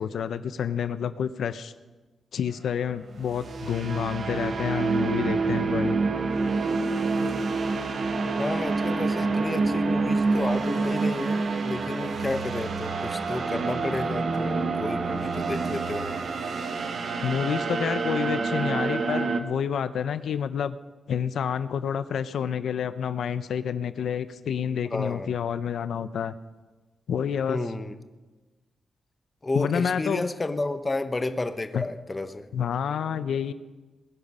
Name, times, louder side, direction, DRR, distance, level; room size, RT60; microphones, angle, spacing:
voice 1, 0.0-1.7 2.3-6.0 17.2-20.8 21.1-26.3 27.1-27.6 29.5-30.3 31.7-31.8 32.5-33.5, left 8 dB, 75° left, 13 dB, 0.6 m, -28 dB
sound 1, 3.1-19.4, right 4 dB, 50° right, 1.2 m, -27 dB
voice 2, 8.4-16.2 24.9-25.3 27.5-27.9 29.4-32.5, left 2 dB, 20° left, 9 dB, 0.8 m, -31 dB
21.0 x 10.5 x 5.5 m, 1.2 s
wide cardioid pair, 160°, 0 cm